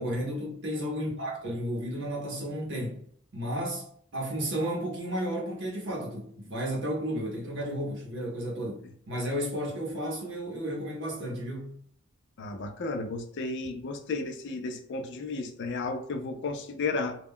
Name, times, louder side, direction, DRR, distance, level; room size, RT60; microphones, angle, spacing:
voice 1, 0.0-3.0 3.3-3.8 4.1-11.7, equal, 60° right, 0.7 m, -33 dB
voice 2, 12.4-17.2, left 3 dB, 55° left, 0.4 m, -33 dB
2.2 x 2.1 x 3.6 m
head